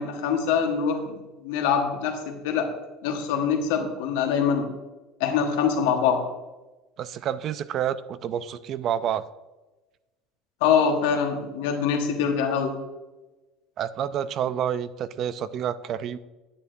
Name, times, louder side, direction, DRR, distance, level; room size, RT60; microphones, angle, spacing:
voice 1, 0.0-2.7 3.0-4.7 5.2-6.2 10.6-12.7, left 7 dB, 85° left, 4 dB, 1.3 m, -24 dB
voice 2, 7.0-9.2 13.8-16.2, right 9 dB, 45° right, 15 dB, 0.4 m, -29 dB
9.6 x 8.4 x 2.6 m, 1.1 s
supercardioid pair, 130°, 0 cm